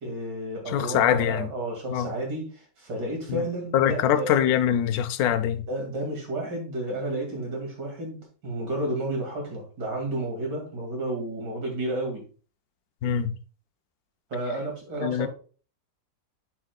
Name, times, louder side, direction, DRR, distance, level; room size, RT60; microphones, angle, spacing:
voice 1, 0.0-4.3 5.7-8.2 8.4-12.2 14.3-15.3, right 1 dB, 75° right, 3.0 m, -31 dB
voice 2, 0.7-1.5 1.9-2.1 3.3-3.4 3.7-5.6 13.0-13.3 15.0-15.3, left 10 dB, 70° left, 1.0 m, -23 dB
8.7 x 6.3 x 2.3 m
omnidirectional pair, 1.9 m